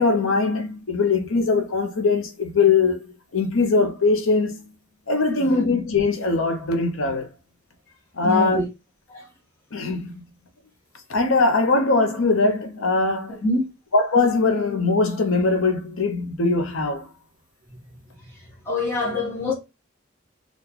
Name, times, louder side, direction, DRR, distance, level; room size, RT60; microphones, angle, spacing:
voice 1, 0.0-3.0 3.3-4.7 5.1-7.3 8.2-8.6 9.7-10.2 11.1-13.4 13.9-17.1, left 3 dB, 80° left, 0.8 m, -21 dB
voice 2, 5.3-5.7 8.2-8.7 9.1-9.3 13.3-13.6 17.7-17.8 18.2-19.5, left 2 dB, 10° left, 1.2 m, -26 dB
3.8 x 2.4 x 2.9 m
head